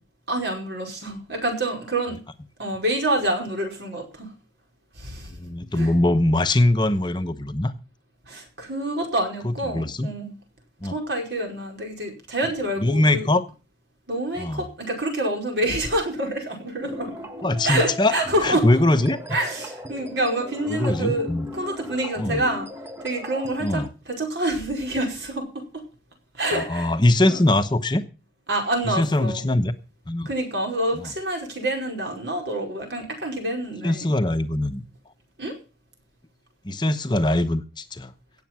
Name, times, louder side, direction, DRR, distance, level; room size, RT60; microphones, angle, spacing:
voice 1, 0.3-2.2 2.6-4.3 5.0-5.3 5.7-5.9 8.3-10.3 10.8-13.3 14.1-17.1 17.6-18.6 19.3-21.3 21.5-22.7 23.0-23.8 24.2-25.8 26.3-26.9 27.3-27.4 28.5-29.5 30.2-34.1 35.4-35.5, right 1 dB, 70° right, 2 dB, 5.1 m, -27 dB
voice 2, 5.4-7.7 9.4-10.1 10.8-10.9 12.8-13.4 14.4-14.6 17.4-18.1 18.4-19.2 20.7-21.5 22.2-22.4 23.6-23.9 26.5-28.1 28.8-29.7 30.1-30.3 30.9-31.1 33.8-34.8 36.6-38.1, left 1 dB, 25° left, 9 dB, 0.9 m, -22 dB
sound 1, 16.8-23.9, left 1 dB, 15° right, 1.0 m, -37 dB
17.0 x 7.6 x 6.1 m, 0.34 s
head